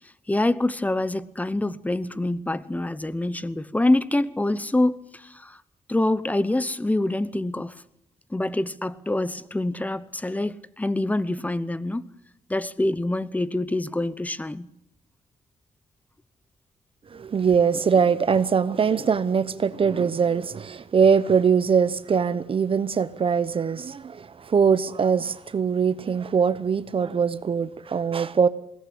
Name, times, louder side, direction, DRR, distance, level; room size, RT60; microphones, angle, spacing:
voice 1, 0.3-5.6 5.9-7.7 8.3-12.0 12.5-14.7, left 1 dB, 10° left, 0.9 m, -25 dB
voice 2, 17.1-28.5, right 6 dB, 40° right, 0.9 m, -22 dB
21.5 x 17.5 x 8.5 m
cardioid pair, 110°, 13 cm